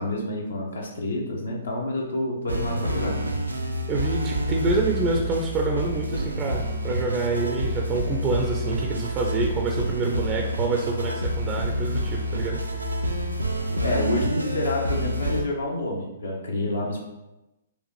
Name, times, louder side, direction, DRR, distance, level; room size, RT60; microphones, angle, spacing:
voice 1, 0.0-3.2 13.7-17.0, left 1 dB, 70° left, -1 dB, 0.8 m, -28 dB
sound 1, 2.5-15.4, equal, 90° right, 0.5 m, -28 dB
voice 2, 3.9-12.6, right 3 dB, 25° right, 1 dB, 0.4 m, -27 dB
4.9 x 2.5 x 3.1 m, 0.98 s
figure-of-eight pair, 120°, 0 cm